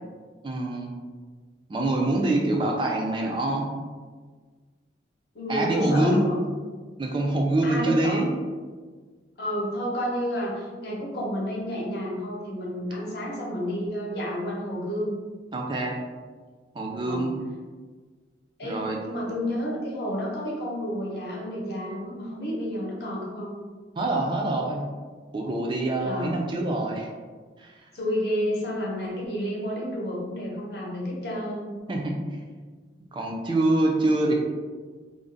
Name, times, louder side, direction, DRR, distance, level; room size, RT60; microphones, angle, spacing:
voice 1, 0.4-0.9 1.7-3.7 5.5-6.2 7.0-8.3 15.5-16.0 16.7-17.4 18.6-19.0 24.0-24.9 25.3-27.1 27.6-27.7 31.9-32.3 33.1-34.3, right 2 dB, 25° right, 0 dB, 0.3 m, -25 dB
voice 2, 5.3-6.4 7.6-8.2 9.4-15.1 17.0-17.3 18.6-23.5 26.0-26.4 27.9-31.8, equal, 60° left, -3 dB, 0.7 m, -30 dB
2.5 x 2.0 x 3.7 m, 1.5 s
head